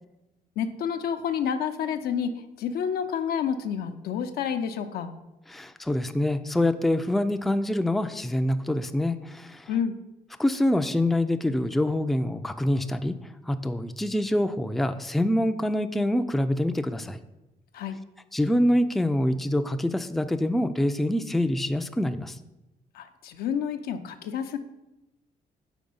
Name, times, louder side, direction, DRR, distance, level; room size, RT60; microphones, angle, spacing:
voice 1, 0.6-2.3 2.6-5.1 9.7-10.0 17.7-18.0 22.9-24.6, left 7 dB, 75° left, 7 dB, 0.6 m, -29 dB
voice 2, 5.5-9.7 10.4-13.1 13.5-17.2 18.3-22.4, left 1 dB, ahead, 9 dB, 0.4 m, -25 dB
5.1 x 4.2 x 5.4 m, 0.96 s
cardioid pair, 75°, 16 cm